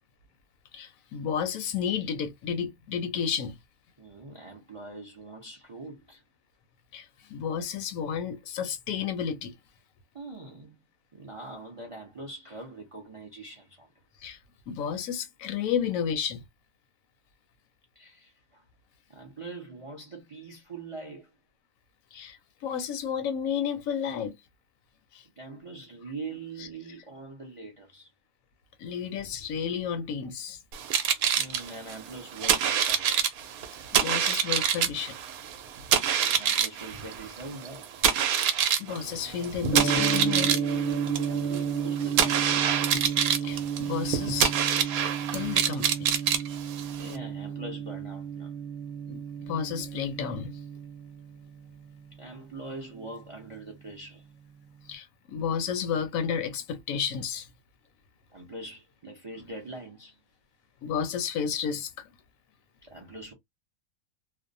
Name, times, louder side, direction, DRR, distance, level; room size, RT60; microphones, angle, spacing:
voice 1, 0.7-3.6 6.9-9.5 14.2-14.4 14.7-16.4 22.1-24.4 25.1-25.2 28.8-30.6 33.9-35.2 38.8-40.6 43.4-44.6 45.3-46.1 49.1-50.5 54.9-57.5 60.8-61.9, left 7 dB, 75° left, 1.0 m, -32 dB
voice 2, 4.0-6.2 10.1-10.8 11.1-13.9 18.0-18.6 19.1-21.3 25.4-28.1 31.4-33.3 36.2-37.9 41.2-42.7 46.9-48.5 52.1-54.2 58.3-60.2 62.8-63.3, right 2 dB, 40° right, 0.4 m, -43 dB
sound 1, 30.7-47.2, right 8 dB, 80° right, 1.0 m, -27 dB
Gong, 39.7-53.9, right 6 dB, 20° left, 0.4 m, -32 dB
2.6 x 2.0 x 2.5 m
omnidirectional pair, 1.5 m